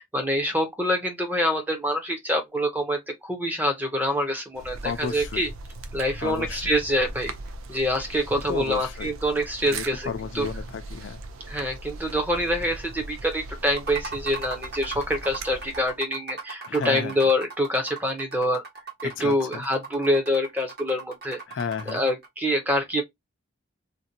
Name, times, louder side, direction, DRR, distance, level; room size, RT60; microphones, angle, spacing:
voice 1, 0.0-5.5 5.9-7.3 7.7-10.1 10.3-10.5 11.5-18.6 19.0-21.4 21.9-23.0, equal, 10° right, 0.5 m, -26 dB
sound 1, 4.5-16.0, right 2 dB, 80° right, 0.4 m, -39 dB
voice 2, 4.8-5.5 6.2-6.6 8.5-9.1 9.6-11.2 16.6-17.1 19.0-19.7 21.5-22.0, left 6 dB, 60° left, 0.4 m, -33 dB
sound 2, 13.7-22.3, right 4 dB, 50° right, 1.0 m, -39 dB
2.6 x 2.1 x 2.6 m
head